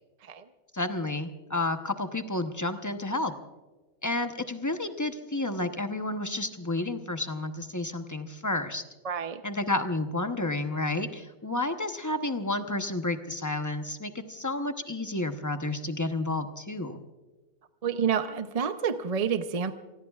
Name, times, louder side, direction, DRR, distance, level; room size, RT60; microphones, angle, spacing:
voice 1, 0.7-3.3 4.0-8.8 9.4-17.0, left 2 dB, 15° left, 7 dB, 0.7 m, -31 dB
voice 2, 9.0-9.4 17.8-19.7, right 7 dB, 40° right, 9 dB, 0.5 m, -28 dB
28.5 x 20.0 x 2.4 m, 1.2 s
omnidirectional pair, 1.5 m